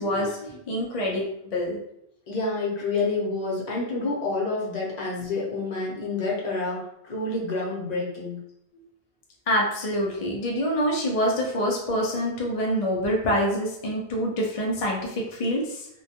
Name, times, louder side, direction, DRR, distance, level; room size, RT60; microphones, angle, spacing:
voice 1, 0.0-1.8 9.5-15.9, equal, 60° left, -2 dB, 0.3 m, -26 dB
voice 2, 2.3-8.4, left 3 dB, 45° left, -4 dB, 0.7 m, -28 dB
2.2 x 2.2 x 2.7 m, 0.77 s
omnidirectional pair, 1.1 m